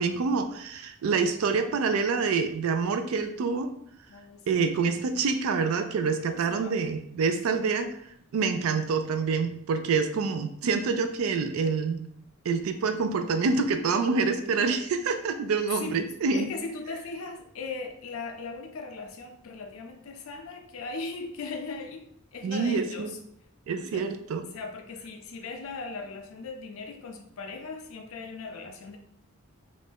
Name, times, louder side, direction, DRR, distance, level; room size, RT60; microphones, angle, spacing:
voice 1, 0.0-3.7 4.5-7.9 8.3-12.0 12.5-16.5 22.4-23.1 23.7-24.5, right 5 dB, 70° right, 7 dB, 0.3 m, -26 dB
voice 2, 4.1-4.7 6.3-6.8 7.5-7.6 15.8-16.0 16.3-23.2 23.9-24.1 24.5-29.0, left 4 dB, 70° left, 5 dB, 0.4 m, -39 dB
2.5 x 2.1 x 3.3 m, 0.69 s
head